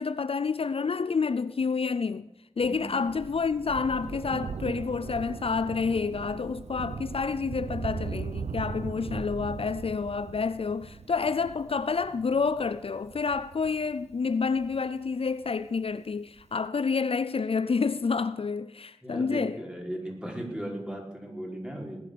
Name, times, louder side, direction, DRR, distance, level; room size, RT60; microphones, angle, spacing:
voice 1, 0.0-2.3 2.6-19.6, left 5 dB, 60° left, 0.5 m, -29 dB
voice 2, 2.6-3.0 19.0-22.0, right 1 dB, 10° right, 5.3 m, -37 dB
Thunder, 2.6-15.5 16.4-16.5, right 5 dB, 85° right, 0.7 m, -39 dB
19.5 x 9.6 x 6.8 m
cardioid pair, 45°, 11 cm